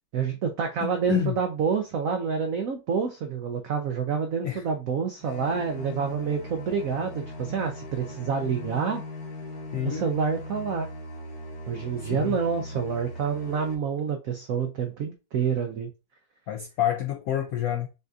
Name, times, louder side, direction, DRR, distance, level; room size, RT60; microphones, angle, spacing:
voice 1, 0.1-9.0 9.8-10.9 11.7-15.9, right 6 dB, 80° right, 0.7 m, -28 dB
voice 2, 0.8-1.3 4.4-4.6 9.7-10.1 12.0-12.4 16.5-17.9, left 11 dB, 85° left, 0.7 m, -28 dB
sound 1, 5.2-13.7, left 1 dB, 55° left, 1.3 m, -39 dB
6.6 x 2.4 x 2.6 m
omnidirectional pair, 2.1 m